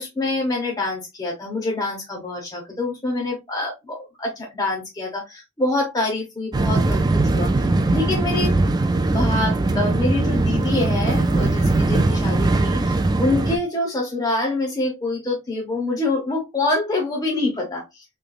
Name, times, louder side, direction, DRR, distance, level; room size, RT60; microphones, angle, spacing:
voice 1, 0.0-7.0 7.3-8.5 9.1-18.0, left 2 dB, 20° left, -1 dB, 0.9 m, -26 dB
sound 1, 6.5-13.6, right 2 dB, 20° right, 0.3 m, -20 dB
3.2 x 3.0 x 2.4 m, 0.22 s
head